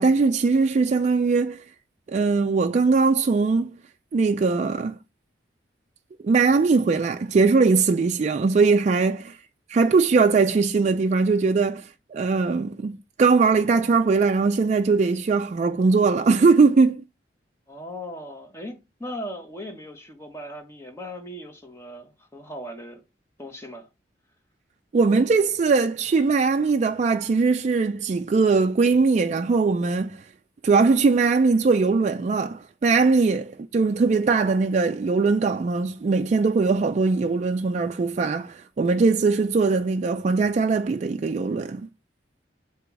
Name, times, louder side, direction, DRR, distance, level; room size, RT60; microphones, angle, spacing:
voice 1, 0.0-1.6 2.1-3.7 4.1-5.0 6.2-9.4 9.7-17.0 24.9-30.2 30.6-41.9, right 4 dB, 40° right, 0.3 m, -21 dB
voice 2, 17.7-23.0 23.4-23.9, equal, 15° left, 1.3 m, -38 dB
7.9 x 3.0 x 4.7 m
head